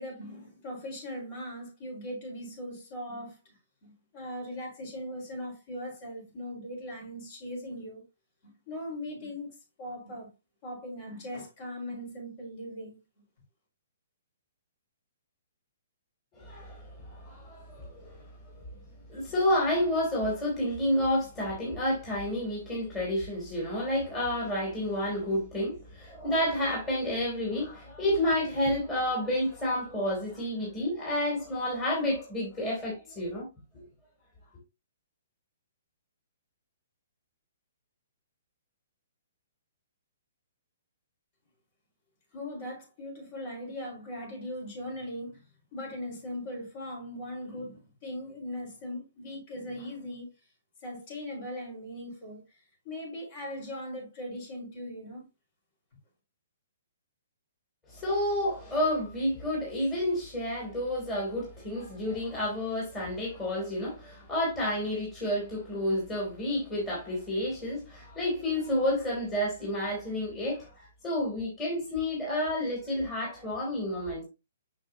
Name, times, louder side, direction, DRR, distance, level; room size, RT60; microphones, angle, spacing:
voice 1, 0.0-3.5 3.8-8.0 8.4-10.3 10.6-13.0 42.3-45.4 45.7-50.3 50.8-55.3, left 1 dB, 40° left, 4.7 m, -39 dB
voice 2, 16.3-18.3 19.1-33.5 33.7-33.8 57.9-74.2, left 1 dB, 15° left, 3.1 m, -30 dB
6.4 x 6.3 x 2.9 m
hypercardioid pair, 150°, 0 cm